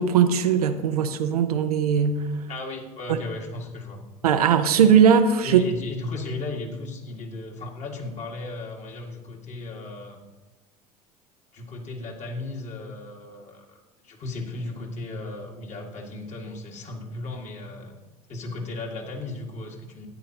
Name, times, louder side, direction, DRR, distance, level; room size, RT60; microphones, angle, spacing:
voice 1, 0.0-2.2 3.1-3.2 4.2-5.6, right 7 dB, 75° right, 8 dB, 0.7 m, -19 dB
voice 2, 2.5-4.0 5.4-10.2 11.5-13.8 14.0-17.9 18.3-20.1, left 2 dB, 35° left, 0 dB, 2.0 m, -35 dB
12.5 x 10.0 x 2.9 m, 1.1 s
figure-of-eight pair, 70°, 19 cm